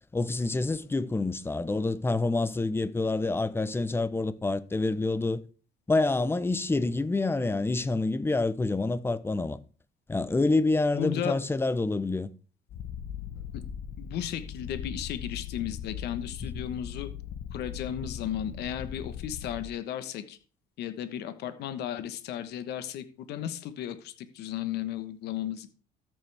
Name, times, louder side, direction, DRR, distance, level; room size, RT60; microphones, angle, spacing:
voice 1, 0.1-5.4 5.9-9.6 10.1-12.3 16.5-16.6, left 3 dB, 15° left, 0.8 m, -27 dB
voice 2, 10.9-11.4 13.5-13.6 14.0-17.1 17.5-20.4 20.8-25.7, left 10 dB, 75° left, 1.3 m, -35 dB
Purr, 12.7-19.7, left 8 dB, 60° left, 1.0 m, -39 dB
13.5 x 9.2 x 3.5 m
cardioid pair, 110°, 17 cm